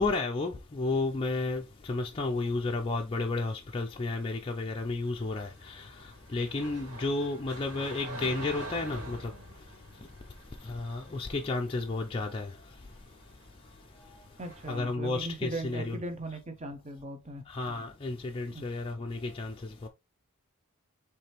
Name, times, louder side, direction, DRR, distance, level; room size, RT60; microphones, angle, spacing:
voice 1, 0.0-14.4 14.7-16.0 17.5-19.9, left 3 dB, 25° left, 0.4 m, -33 dB
sound 1, 5.1-14.9, right 1 dB, 80° right, 2.2 m, -46 dB
voice 2, 14.4-17.4 18.5-18.6, right 2 dB, 30° right, 0.8 m, -39 dB
4.8 x 3.3 x 3.0 m
head